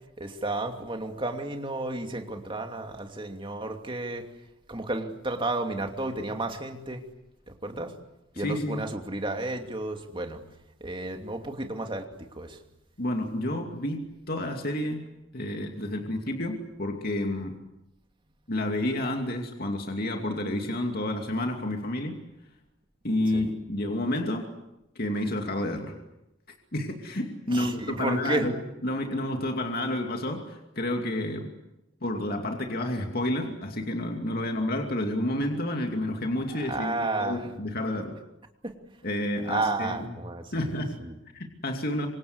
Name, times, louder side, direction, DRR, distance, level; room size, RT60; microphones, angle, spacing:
voice 1, 0.2-4.2 4.7-7.0 7.6-7.9 8.4-10.4 10.8-12.0 12.3-12.6 23.3-23.5 27.5-28.5 36.5-37.5 38.6-38.7 39.5-41.2, right 2 dB, 25° right, 4 dB, 2.8 m, -32 dB
voice 2, 8.3-8.8 13.0-17.6 18.5-22.2 23.0-24.5 24.9-26.0 26.7-28.5 28.8-31.5 32.0-38.2 39.0-40.0 40.5-40.9 41.3-42.1, left 1 dB, 50° left, 3 dB, 2.7 m, -30 dB
27.5 x 26.0 x 8.1 m, 0.91 s
head